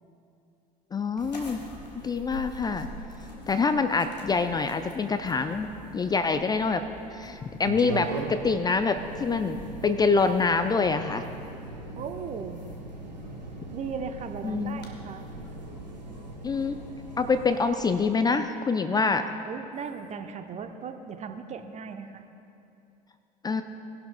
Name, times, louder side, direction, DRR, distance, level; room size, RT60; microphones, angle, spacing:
voice 1, 0.9-1.6 2.0-2.9 3.5-6.8 7.1-11.2 14.4-14.8 16.4-16.8 17.2-19.3 23.4-23.6, left 4 dB, 20° left, 9 dB, 0.4 m, -26 dB
sound 1, 1.2-18.1, left 1 dB, 85° left, 1.2 m, -46 dB
sound 2, 7.6-17.4, right 3 dB, 85° right, 0.9 m, -40 dB
voice 2, 12.0-12.6 13.7-15.3 19.5-22.2, right 6 dB, 35° right, 7 dB, 0.8 m, -37 dB
18.5 x 11.0 x 2.2 m, 2.6 s
figure-of-eight pair, 65°, 21 cm